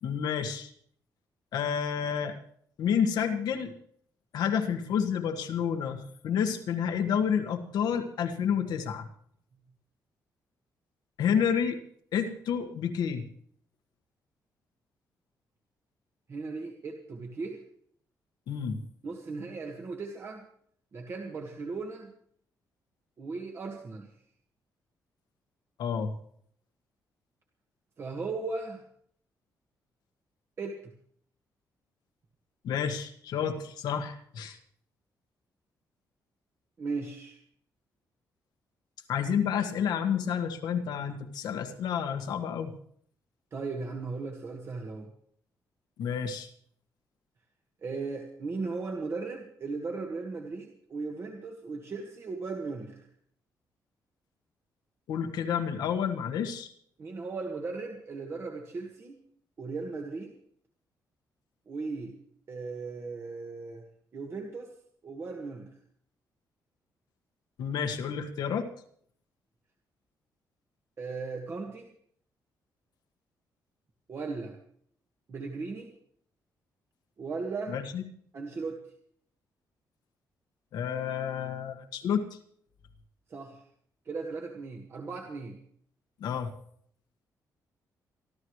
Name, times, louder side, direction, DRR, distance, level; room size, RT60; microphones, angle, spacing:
voice 1, 0.0-0.7 1.5-2.4 2.8-3.7 4.3-9.1 11.2-11.8 12.1-13.2 18.5-18.8 25.8-26.1 32.6-34.6 39.1-42.7 46.0-46.5 55.1-56.7 67.6-68.7 77.7-78.0 80.7-82.4 86.2-86.5, left 7 dB, 90° left, 5 dB, 1.6 m, -30 dB
voice 2, 16.3-17.6 19.0-20.4 20.9-22.1 23.2-24.1 28.0-28.8 30.6-30.9 36.8-37.4 43.5-45.1 47.8-53.0 57.0-59.2 59.6-60.3 61.7-62.1 62.5-63.8 64.1-64.7 65.0-65.7 71.0-71.9 74.1-74.6 75.3-75.9 77.2-77.8 78.3-78.8 83.3-83.6 84.0-85.6, right 4 dB, 40° right, 2 dB, 1.6 m, -37 dB
24.5 x 12.5 x 3.2 m, 0.62 s
cardioid pair, 150°, 7 cm